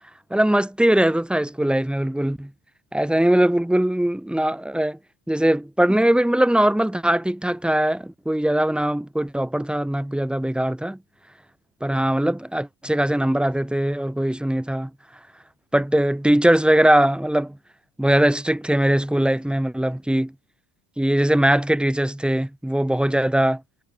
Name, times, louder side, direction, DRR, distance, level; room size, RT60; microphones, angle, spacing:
voice 1, 0.3-2.5 2.9-5.0 5.3-11.0 11.8-14.9 15.7-17.6 18.0-20.3 21.0-23.6, right 1 dB, ahead, 1.4 m, -21 dB
figure-of-eight pair, 60°, 48 cm